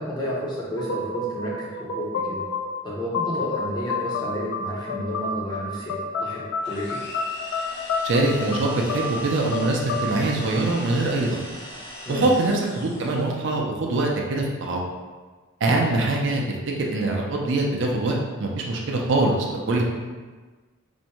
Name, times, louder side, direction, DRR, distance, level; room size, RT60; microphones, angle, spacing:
voice 1, 0.0-2.4 2.8-7.0 12.0-12.3 15.9-16.0 19.4-19.5, equal, 20° left, -6 dB, 0.5 m, -31 dB
sound 1, 0.8-11.4, left 3 dB, 80° left, 0.3 m, -30 dB
sound 2, 6.6-13.3, left 1 dB, 60° left, 1.3 m, -40 dB
voice 2, 8.0-11.4 12.1-14.8 15.6-19.8, right 2 dB, 55° right, -1 dB, 0.4 m, -23 dB
2.5 x 2.1 x 2.8 m, 1.4 s
head